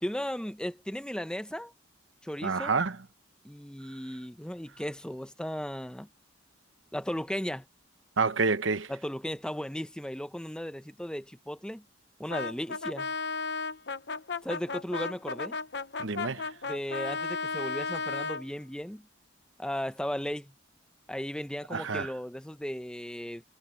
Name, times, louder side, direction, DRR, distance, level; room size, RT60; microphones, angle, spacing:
voice 1, 0.0-1.7 2.2-2.7 3.4-6.1 6.9-7.6 8.9-11.8 12.2-13.1 14.4-15.6 16.7-19.0 19.6-20.5 21.1-23.4, equal, 5° left, 0.8 m, -36 dB
voice 2, 2.4-3.0 8.2-8.9 16.0-16.5 21.7-22.1, right 4 dB, 75° right, 1.0 m, -28 dB
Brass instrument, 12.3-18.5, left 4 dB, 60° left, 1.0 m, -34 dB
head